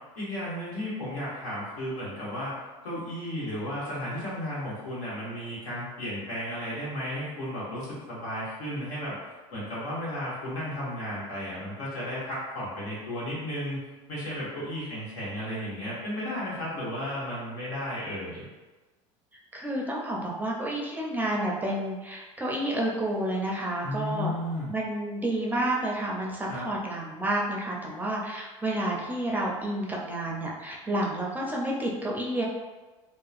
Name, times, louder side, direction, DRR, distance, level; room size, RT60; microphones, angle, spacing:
voice 1, 0.1-2.5 2.8-9.2 9.5-13.8 14.1-18.5 23.8-24.7 26.5-26.7, equal, 80° left, -8 dB, 1.4 m, -34 dB
voice 2, 19.5-24.3 24.7-32.4, right 1 dB, 10° right, -3 dB, 0.5 m, -30 dB
2.8 x 2.3 x 2.4 m, 1.2 s
supercardioid pair, 100°, 16 cm